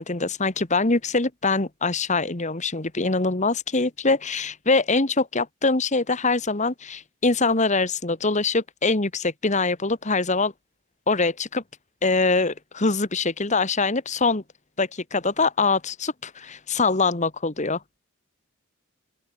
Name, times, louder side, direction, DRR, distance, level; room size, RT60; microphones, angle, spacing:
voice 1, 0.0-10.5 11.1-11.6 12.0-14.4 14.8-17.8, left 3 dB, 35° left, 1.6 m, -23 dB
open air
head